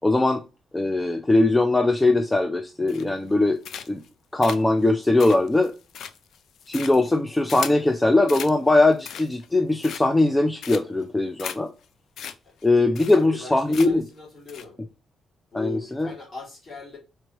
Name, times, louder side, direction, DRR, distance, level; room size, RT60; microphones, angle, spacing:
voice 1, 0.0-0.4 0.7-3.6 3.9-4.0 4.3-5.7 6.7-11.7 12.6-14.1 15.5-16.1, left 2 dB, 15° left, 0.4 m, -20 dB
sound 1, 2.9-3.3 3.6-4.1 4.4-7.9 8.3-8.5 8.9-9.5 9.8-10.3 10.6-11.0 11.4-11.6 11.8-11.9 12.2-12.3 12.6-12.7 12.9-13.4 13.7-14.1 14.5-14.6, left 8 dB, 75° left, 0.4 m, -37 dB
voice 2, 12.9-14.8 15.5-17.0, left 4 dB, 40° left, 2.5 m, -39 dB
4.4 x 3.1 x 3.0 m
cardioid pair, 100°, 0 cm